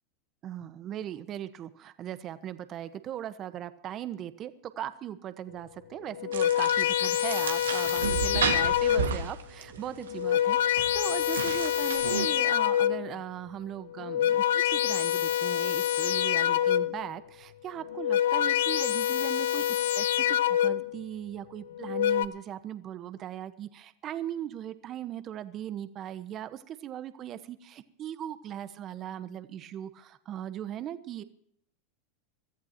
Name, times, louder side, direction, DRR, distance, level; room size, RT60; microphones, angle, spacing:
voice 1, 0.4-31.2, right 11 dB, 40° right, 12 dB, 1.2 m, -39 dB
sound 1, 6.1-9.3 10.0-13.2 13.9-17.1 17.8-21.0 21.7-22.3, left 11 dB, 75° left, 0.7 m, -26 dB
sound 2, 6.3-12.3, right 7 dB, 90° right, 1.9 m, -34 dB
24.5 x 14.5 x 2.9 m, 0.69 s
hypercardioid pair, 100°, 0 cm